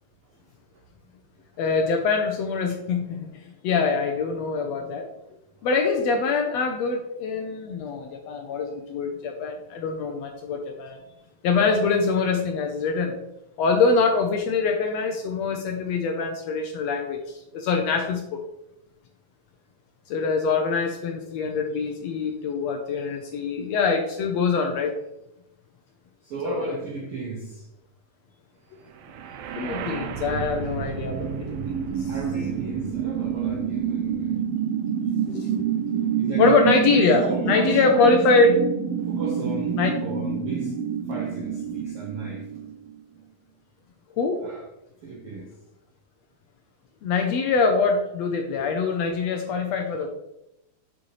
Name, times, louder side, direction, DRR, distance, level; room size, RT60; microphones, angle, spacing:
voice 1, 1.6-5.0 5.6-11.0 11.4-13.2 13.6-18.4 20.1-24.9 26.4-26.7 29.6-32.1 35.3-35.6 36.4-38.5 39.8-40.0 44.2-44.4 47.0-50.1, left 4 dB, 75° left, 4 dB, 1.6 m, -24 dB
voice 2, 26.2-27.7 32.1-34.5 36.2-38.2 39.1-40.8 41.0-42.6 44.4-44.7 45.0-45.5, right 3 dB, 75° right, 0 dB, 1.3 m, -35 dB
sound 1, 29.0-43.0, right 7 dB, 90° right, 1.3 m, -28 dB
7.2 x 6.4 x 3.2 m, 0.86 s
omnidirectional pair, 3.6 m